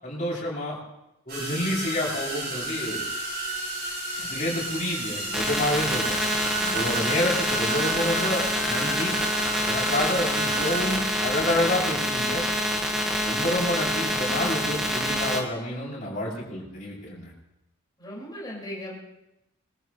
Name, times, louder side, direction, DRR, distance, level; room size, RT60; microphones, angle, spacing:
voice 1, 0.0-0.8 1.3-3.1 4.2-6.2 6.6-9.1 9.6-12.4 13.2-17.3, left 1 dB, 35° left, -5 dB, 7.0 m, -28 dB
sound 1, 1.3-11.0, right 2 dB, 50° right, 7.1 m, -32 dB
sound 2, 5.3-15.4, equal, ahead, 1.8 m, -27 dB
voice 2, 14.4-14.7 18.0-19.0, equal, 20° left, -4 dB, 5.5 m, -39 dB
24.5 x 14.0 x 3.3 m, 0.88 s
head